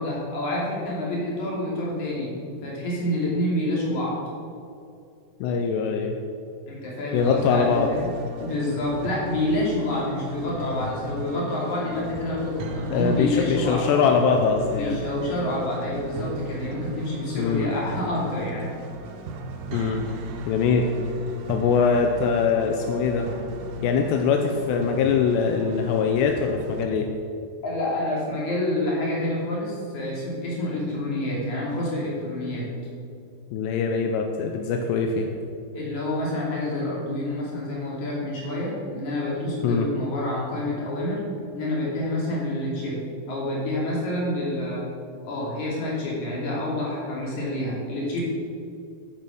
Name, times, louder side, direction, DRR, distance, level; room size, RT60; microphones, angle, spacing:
voice 1, 0.0-2.3 2.6-4.2 6.7-8.1 8.4-13.9 14.7-18.7 27.6-32.7 35.7-41.2 41.5-43.0 43.3-44.9 45.2-48.2, left 1 dB, 50° left, -4 dB, 4.0 m, -28 dB
voice 2, 5.4-6.2 7.1-7.9 12.9-15.0 17.3-17.7 19.7-20.0 20.5-21.0 21.5-23.3 23.8-27.1 33.5-35.3 39.6-39.9, left 6 dB, 85° left, 4 dB, 2.9 m, -22 dB
sound 1, 7.1-26.9, right 2 dB, 70° right, 2.2 m, -36 dB
9.8 x 9.4 x 6.4 m, 2.5 s
omnidirectional pair, 4.8 m